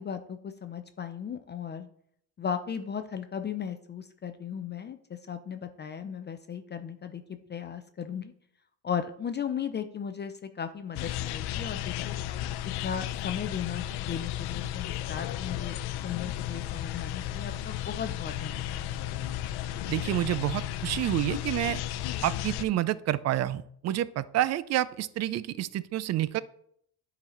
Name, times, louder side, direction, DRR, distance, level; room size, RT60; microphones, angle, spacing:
voice 1, 0.0-1.9 2.4-7.2 7.5-8.3 8.8-12.2 12.8-15.8 16.0-19.0, left 7 dB, 25° left, 8 dB, 0.4 m, -36 dB
sound 1, 10.9-22.6, left 12 dB, 70° left, 0.6 m, -34 dB
voice 2, 19.9-21.8 22.2-26.4, right 13 dB, 40° right, 17 dB, 0.4 m, -28 dB
9.6 x 4.0 x 4.3 m, 0.69 s
cardioid pair, 110°, 40 cm